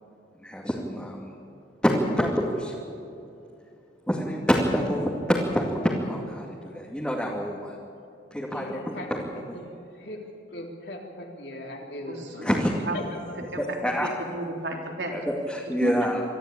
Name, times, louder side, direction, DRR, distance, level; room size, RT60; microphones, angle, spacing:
voice 1, 0.4-1.3 1.8-2.8 4.1-7.8 8.3-9.6 12.4-12.8 13.6-14.1 15.1-16.2, equal, 5° left, -4 dB, 2.4 m, -27 dB
voice 2, 8.5-9.1 10.0-10.2 10.5-12.5, left 1 dB, 65° left, 0 dB, 3.7 m, -39 dB
voice 3, 12.1-13.1 13.5-13.6 14.0-15.1 15.8-15.9, right 1 dB, 75° right, 1 dB, 3.7 m, -33 dB
24.5 x 14.0 x 8.7 m, 2.7 s
head